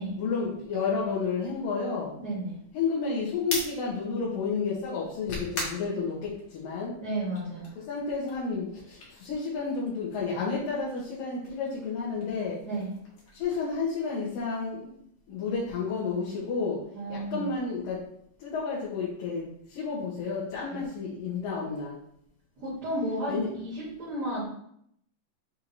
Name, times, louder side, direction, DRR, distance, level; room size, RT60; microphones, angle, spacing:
voice 1, 0.2-2.2 2.7-6.9 7.9-12.6 13.4-14.9 15.3-16.8 17.1-18.0 18.4-22.0 23.3-23.5, left 4 dB, 85° left, -6 dB, 2.9 m, -31 dB
voice 2, 2.2-2.5 7.0-7.7 12.6-12.9 16.9-17.5 20.7-20.8 22.6-24.5, right 1 dB, 30° right, -11 dB, 2.4 m, -33 dB
sound 1, 3.4-6.8 7.2-10.2 10.4-14.6, left 1 dB, 65° left, 0.8 m, -41 dB
7.4 x 4.6 x 2.8 m, 0.70 s
omnidirectional pair, 3.9 m